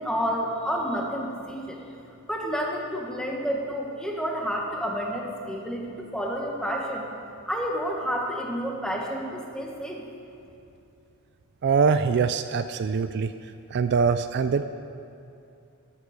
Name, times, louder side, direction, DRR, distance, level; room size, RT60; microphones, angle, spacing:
voice 1, 0.0-1.8 2.3-7.1 7.5-10.0, equal, 5° left, -1 dB, 1.5 m, -30 dB
voice 2, 11.6-13.3 13.7-14.7, right 5 dB, 50° right, 10 dB, 0.4 m, -23 dB
14.0 x 8.0 x 6.6 m, 2.6 s
head